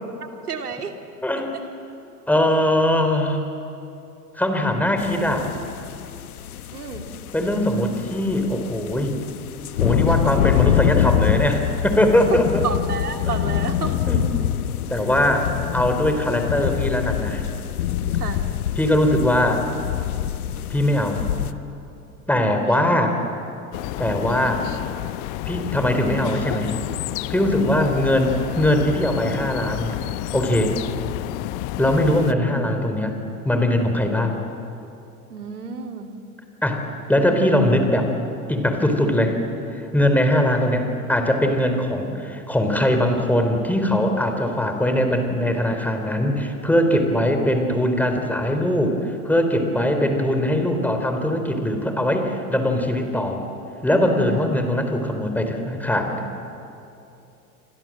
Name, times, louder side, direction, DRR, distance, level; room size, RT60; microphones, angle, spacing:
voice 1, 0.2-0.9 6.7-7.2 10.1-10.4 12.6-13.9 14.9-15.1 18.2-18.5 22.8-22.9 27.4-27.7 35.3-36.1 54.1-54.5, right 5 dB, 85° right, 5 dB, 2.7 m, -32 dB
voice 2, 1.2-1.6 2.3-3.4 4.4-5.5 7.3-9.2 9.8-12.6 14.1-14.3 14.9-17.4 18.8-19.6 20.7-21.3 22.3-23.2 24.0-24.7 25.4-26.7 27.3-30.0 30.3-30.8 31.8-33.1 33.4-34.4 36.6-36.8 37.1-38.1 38.5-39.4 39.8-53.4 53.8-56.2, left 1 dB, 5° left, 5 dB, 4.2 m, -21 dB
sound 1, 5.0-21.5, left 10 dB, 75° left, 1.2 m, -25 dB
sound 2, 23.7-32.3, left 17 dB, 50° left, 0.9 m, -30 dB
28.5 x 26.0 x 7.8 m, 2.8 s
hypercardioid pair, 90°, 44 cm